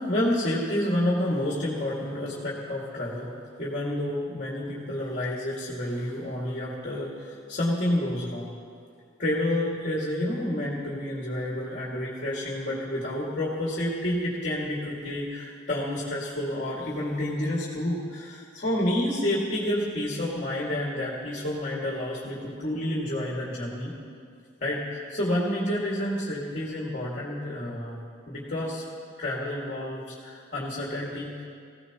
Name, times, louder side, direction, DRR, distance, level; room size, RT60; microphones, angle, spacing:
voice 1, 0.0-3.3 3.6-8.5 9.2-23.9 24.6-28.8 29.2-31.4, left 1 dB, 45° left, -4 dB, 2.1 m, -29 dB
20.5 x 16.0 x 3.0 m, 2.2 s
head